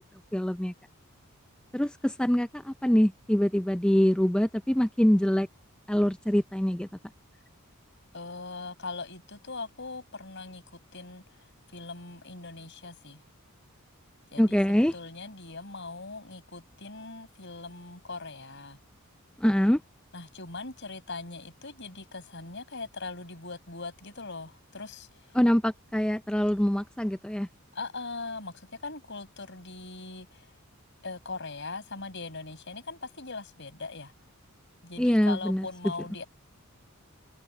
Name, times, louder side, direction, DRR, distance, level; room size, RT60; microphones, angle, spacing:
voice 1, 0.3-0.7 1.7-5.5 5.9-6.9 14.4-14.9 19.4-19.8 25.3-27.5 35.0-35.7, equal, 5° left, 0.4 m, -24 dB
voice 2, 8.1-11.5 11.7-13.2 14.3-18.8 20.1-25.4 27.7-30.5 31.0-34.1 34.8-36.3, left 3 dB, 55° left, 5.9 m, -40 dB
head